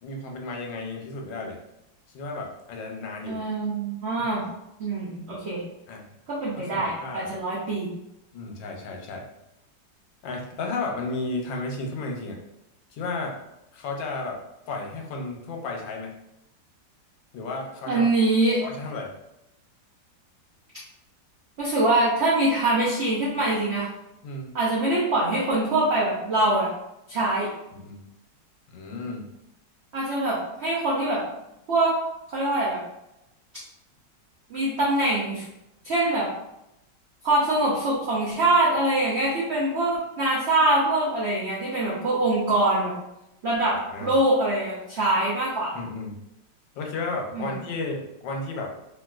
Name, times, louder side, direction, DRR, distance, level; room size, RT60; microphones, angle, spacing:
voice 1, 0.0-1.6 2.1-3.4 4.2-4.3 5.9-6.0 6.7-7.3 8.3-9.2 10.2-12.4 12.9-13.3 13.7-14.4 14.7-16.1 17.3-18.1 18.6-19.1 24.2-24.5 27.7-28.1 28.7-29.3 43.9-44.1 45.7-46.1 46.7-48.7, left 3 dB, 90° left, 1 dB, 1.4 m, -33 dB
voice 2, 3.3-4.4 4.8-5.6 6.3-7.9 17.9-18.6 21.6-23.9 24.5-26.7 27.1-27.5 29.9-31.2 31.7-31.9 32.3-32.8 34.5-35.4 35.8-36.3 37.2-42.9 43.4-45.8 47.3-47.5, right 2 dB, 85° right, -6 dB, 0.6 m, -24 dB
3.7 x 2.5 x 2.3 m, 0.88 s
omnidirectional pair, 2.0 m